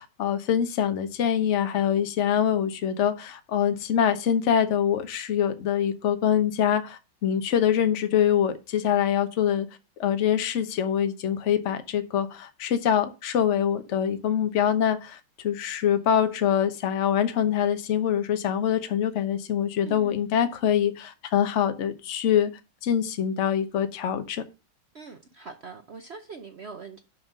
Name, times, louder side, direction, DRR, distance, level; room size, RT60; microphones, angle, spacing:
voice 1, 0.0-9.7 10.0-15.2 15.4-22.5 22.8-24.4, left 9 dB, 50° left, 1.0 m, -24 dB
voice 2, 19.9-20.3 24.9-27.0, right 4 dB, 80° right, 0.5 m, -42 dB
6.3 x 5.6 x 6.4 m
omnidirectional pair, 2.2 m